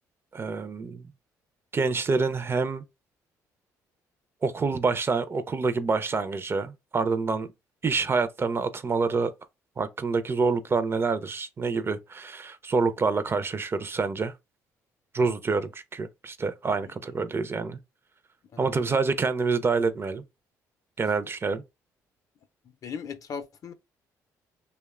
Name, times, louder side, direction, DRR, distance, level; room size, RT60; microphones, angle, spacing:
voice 1, 0.3-1.0 1.7-2.8 4.4-7.5 7.8-9.3 9.8-14.3 15.1-17.8 18.6-20.2 21.0-21.6, right 4 dB, 30° right, 0.4 m, -27 dB
voice 2, 18.5-19.0 22.8-23.7, left 6 dB, 50° left, 0.5 m, -38 dB
2.8 x 2.1 x 2.3 m
supercardioid pair, 60°, 8 cm